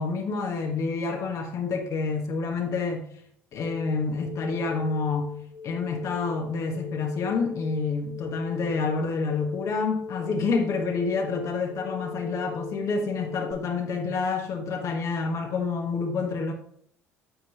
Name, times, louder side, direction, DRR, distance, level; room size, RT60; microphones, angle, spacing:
voice 1, 0.0-3.1 3.5-5.4 5.6-16.5, left 4 dB, 55° left, 1.6 m, -28 dB
sound 1, 3.5-13.5, left 5 dB, 75° left, 2.9 m, -39 dB
8.6 x 7.5 x 3.0 m
hypercardioid pair, 60°, 7 cm